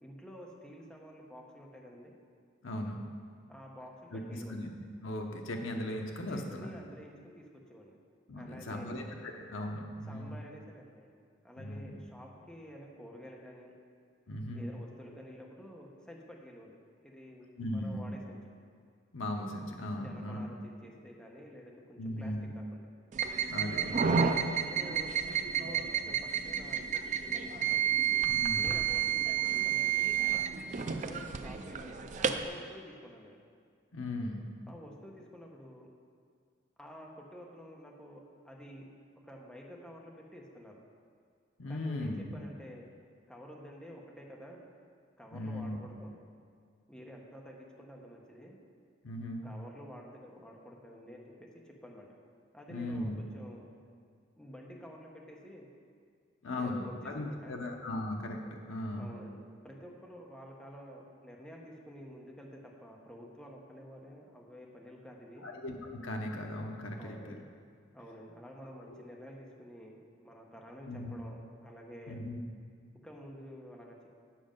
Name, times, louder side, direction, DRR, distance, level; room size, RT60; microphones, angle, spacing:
voice 1, 0.0-2.1 3.5-4.7 6.3-7.4 7.7-8.0 8.4-9.0 10.0-13.7 14.5-16.8 17.0-18.4 20.0-22.9 23.9-25.2 25.6-27.7 28.5-30.3 31.0-33.4 34.7-35.9 36.8-38.9 39.2-40.7 41.7-42.9 43.3-44.7 45.2-46.2 46.9-48.6 49.4-52.1 52.5-53.7 54.4-55.7 56.6-57.6 59.0-65.5 66.9-67.4 67.9-70.0 70.2-72.2 73.0-74.1, equal, 5° left, -1 dB, 0.9 m, -50 dB
voice 2, 2.6-3.0 4.1-4.7 5.0-6.7 8.3-10.4 11.6-11.9 14.3-14.6 17.6-18.1 19.1-20.4 22.0-22.5 23.5-23.9 28.3-28.7 33.9-34.4 41.6-42.2 45.3-45.8 49.0-49.4 52.7-53.2 56.4-59.1 65.4-65.7 66.0-67.4 68.9-69.0 70.8-71.2 72.1-72.4, left 1 dB, 75° left, 2 dB, 0.9 m, -38 dB
sound 1, 23.1-32.5, right 8 dB, 40° right, 0.4 m, -31 dB
7.5 x 6.2 x 5.2 m, 2.1 s
head